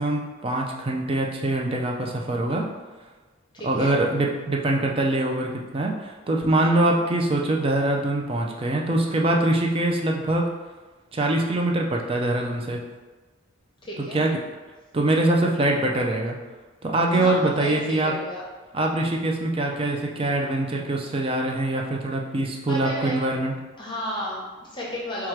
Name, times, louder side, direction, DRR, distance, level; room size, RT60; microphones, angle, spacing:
voice 1, 0.0-2.7 3.6-10.5 11.1-12.8 14.0-14.4 14.9-16.4 16.8-18.1 18.7-23.5, right 2 dB, 25° right, 0 dB, 0.4 m, -23 dB
voice 2, 3.5-4.0 6.7-7.0 13.8-14.2 17.1-18.4 22.7-23.2 23.8-25.3, equal, 20° left, -4 dB, 0.9 m, -33 dB
4.5 x 2.4 x 4.5 m, 1.3 s
head